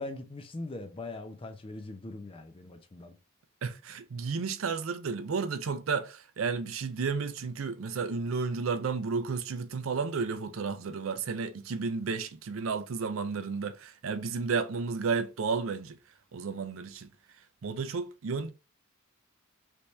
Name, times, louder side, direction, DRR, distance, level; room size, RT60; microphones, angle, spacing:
voice 1, 0.0-3.1, left 2 dB, 25° left, 0.5 m, -41 dB
voice 2, 3.6-16.0 16.3-17.1 17.6-18.5, right 5 dB, 65° right, 0.5 m, -32 dB
3.4 x 2.8 x 3.1 m
head